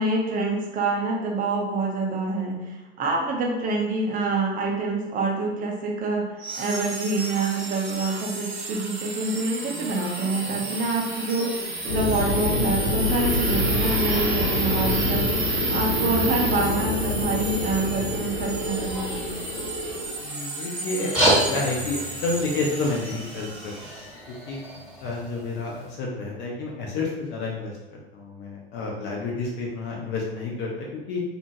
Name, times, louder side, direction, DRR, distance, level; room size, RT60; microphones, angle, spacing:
voice 1, 0.0-15.3 15.7-19.3, right 3 dB, 25° right, -1 dB, 0.6 m, -26 dB
sound 1, 6.4-24.1, right 2 dB, 70° right, 0.9 m, -31 dB
sound 2, 11.9-20.1, left 2 dB, 80° left, 0.6 m, -27 dB
voice 2, 20.2-23.9 24.5-24.6 25.0-27.7 28.1-31.2, left 3 dB, 35° left, -2 dB, 0.5 m, -30 dB
sound 3, 20.9-25.9, right 1 dB, 5° right, 1.0 m, -28 dB
2.8 x 2.2 x 2.6 m, 1.1 s
figure-of-eight pair, 75°, 32 cm